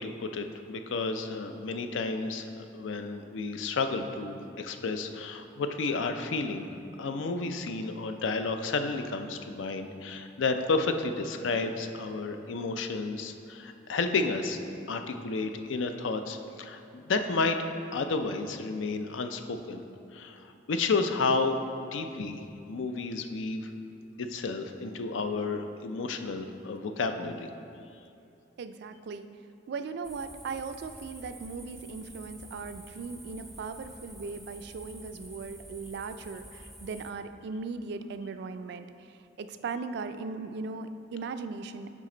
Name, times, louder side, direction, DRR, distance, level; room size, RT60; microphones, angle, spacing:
voice 1, 0.0-6.7 7.0-14.6 14.9-17.6 17.9-19.8 20.1-21.6 21.9-23.7 24.2-27.5, left 3 dB, 80° left, 7 dB, 0.4 m, -31 dB
voice 2, 28.6-29.3 29.7-41.9, right 4 dB, 60° right, 10 dB, 0.3 m, -38 dB
sound 1, 30.0-37.1, right 1 dB, ahead, 0.5 m, -49 dB
7.4 x 5.0 x 3.8 m, 2.6 s
head